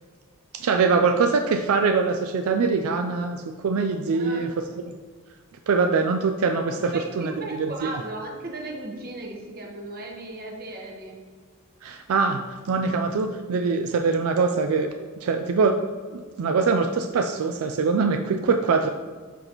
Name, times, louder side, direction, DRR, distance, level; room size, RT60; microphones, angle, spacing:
voice 1, 0.5-4.5 5.7-7.3 7.6-7.9 11.8-14.9 15.2-15.8 16.1-18.9, right 4 dB, 75° right, 5 dB, 0.4 m, -23 dB
voice 2, 4.1-4.6 6.9-11.2, right 2 dB, 40° right, 0 dB, 1.1 m, -36 dB
12.0 x 4.0 x 3.0 m, 1.5 s
head